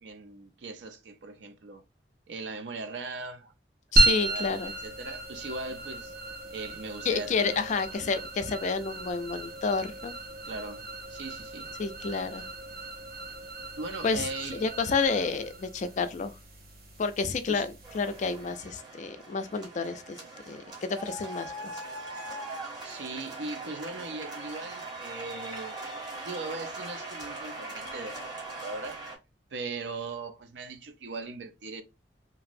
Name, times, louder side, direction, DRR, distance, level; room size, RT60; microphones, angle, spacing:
voice 1, 0.0-1.8 2.3-3.5 4.2-6.1 6.5-8.2 10.5-11.7 13.8-14.7 17.5-17.7 22.8-25.8 26.2-28.3 28.6-29.0 29.5-31.8, right 3 dB, 75° right, 0.5 m, -39 dB
voice 2, 3.9-4.7 7.0-10.1 11.8-12.5 14.0-14.3 14.6-16.3 17.0-20.2 20.5-21.5, left 4 dB, 45° left, 0.4 m, -30 dB
sound 1, 4.0-18.6, right 2 dB, 55° right, 0.8 m, -33 dB
sound 2, 17.8-29.2, right 2 dB, 25° right, 1.0 m, -41 dB
2.9 x 2.6 x 2.5 m
head